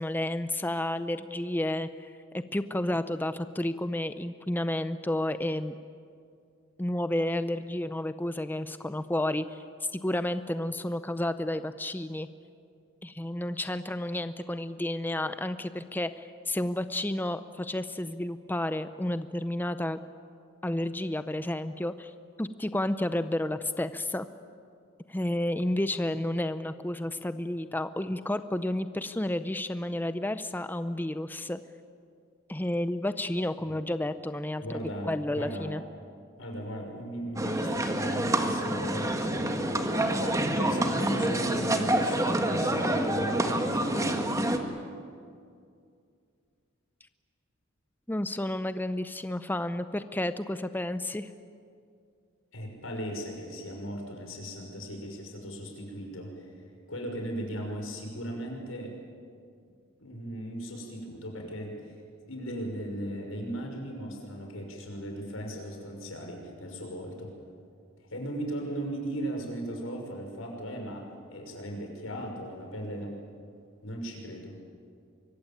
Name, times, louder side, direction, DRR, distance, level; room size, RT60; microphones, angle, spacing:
voice 1, 0.0-2.1 2.3-5.7 6.8-9.6 9.9-12.3 13.0-20.0 20.6-22.1 22.4-24.3 25.1-31.6 32.5-35.8 48.1-51.3, left 1 dB, 10° left, 11 dB, 0.6 m, -31 dB
voice 2, 34.6-35.7 36.4-44.5 52.5-56.3 56.9-58.9 60.0-61.8 62.2-67.3 68.1-73.1 73.8-74.6, equal, 90° left, 2 dB, 6.0 m, -37 dB
sound 1, 37.4-44.6, right 1 dB, 15° right, 1.8 m, -27 dB
24.5 x 22.5 x 8.9 m, 2.3 s
head